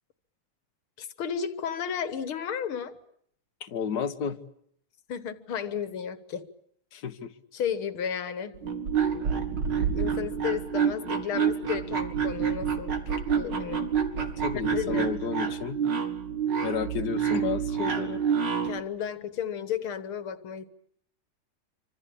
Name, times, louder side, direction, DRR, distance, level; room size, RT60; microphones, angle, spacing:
voice 1, 1.0-3.0 5.1-6.5 7.5-8.6 9.3-9.5 9.9-13.0 13.3-13.9 14.5-15.1 18.6-20.7, left 8 dB, 85° left, 12 dB, 2.3 m, -33 dB
voice 2, 3.6-4.4 6.9-7.3 14.2-15.8 16.6-18.2, left 7 dB, 55° left, 6 dB, 1.9 m, -32 dB
sound 1, 8.5-18.8, right 7 dB, 60° right, 2.8 m, -28 dB
26.5 x 25.5 x 8.6 m, 0.67 s
omnidirectional pair, 2.2 m